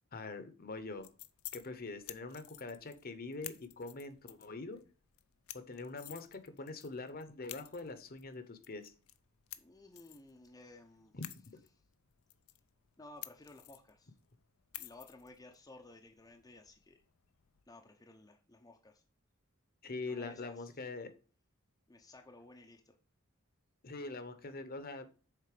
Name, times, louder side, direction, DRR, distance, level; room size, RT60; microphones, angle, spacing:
voice 1, 0.1-1.1 1.5-4.8 5.5-8.9 11.1-11.2 19.8-21.1 23.8-25.1, left 3 dB, 45° left, 10 dB, 0.9 m, -43 dB
sound 1, 0.7-17.6, left 15 dB, 80° left, 0.5 m, -54 dB
voice 2, 9.6-11.1 13.0-14.1 14.7-17.0 17.7-19.0 20.0-20.9 21.9-23.0, left 2 dB, 15° left, 2 dB, 0.6 m, -56 dB
6.7 x 4.1 x 4.9 m, 0.37 s
head